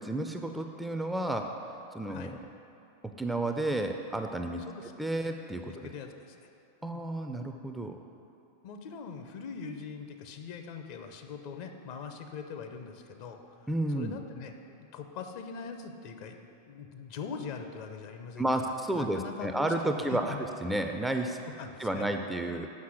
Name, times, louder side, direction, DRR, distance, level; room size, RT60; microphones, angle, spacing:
voice 1, 0.0-1.5 1.9-2.4 3.0-4.6 5.0-5.9 6.8-8.0 13.7-14.2 18.4-21.4 21.8-22.7, right 1 dB, 5° right, 5 dB, 0.4 m, -31 dB
voice 2, 5.7-6.4 6.8-7.0 8.6-13.7 13.9-14.5 14.8-16.4 16.6-20.5 21.4-22.1, left 5 dB, 45° left, 6 dB, 0.7 m, -42 dB
7.4 x 5.7 x 6.2 m, 2.7 s
figure-of-eight pair, 90°, 0 cm